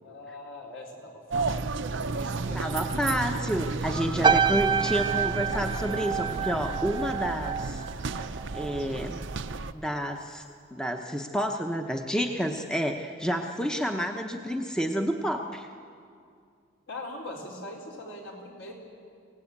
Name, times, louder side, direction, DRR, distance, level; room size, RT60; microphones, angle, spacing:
voice 1, 0.0-3.4 16.9-18.7, left 2 dB, 65° left, -1 dB, 4.3 m, -42 dB
sound 1, 1.3-9.7, right 3 dB, 60° right, 0.6 m, -33 dB
voice 2, 2.5-7.8 8.5-9.2 9.7-10.4 10.7-15.7, equal, 5° left, 3 dB, 0.9 m, -29 dB
sound 2, 4.2-8.8 9.1-9.5, right 6 dB, 20° right, 0.5 m, -28 dB
25.5 x 18.0 x 8.6 m, 2.3 s
head